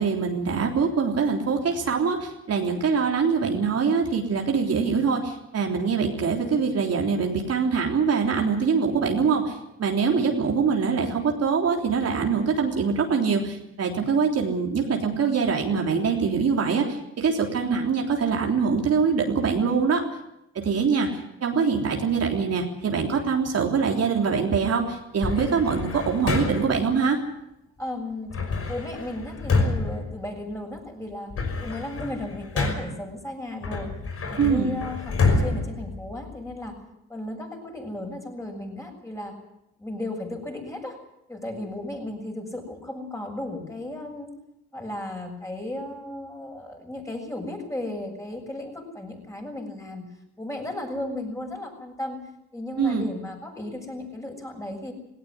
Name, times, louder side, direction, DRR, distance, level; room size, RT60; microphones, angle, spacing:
voice 1, 0.0-20.0 20.6-27.2 34.4-34.7 52.8-53.1, right 5 dB, 55° right, 2 dB, 3.5 m, -24 dB
sound 1, 25.2-26.9 28.3-30.8 31.1-33.1 33.6-36.6, left 3 dB, 50° left, 5.9 m, -28 dB
voice 2, 27.8-28.3 28.7-31.3 31.6-33.9 34.3-36.8 37.1-39.4 39.8-41.0 41.3-44.3 44.7-50.1 50.4-52.2 52.5-54.9, left 1 dB, 10° left, 1 dB, 7.4 m, -35 dB
18.5 x 17.5 x 9.8 m, 0.83 s
cardioid pair, 90°, 30 cm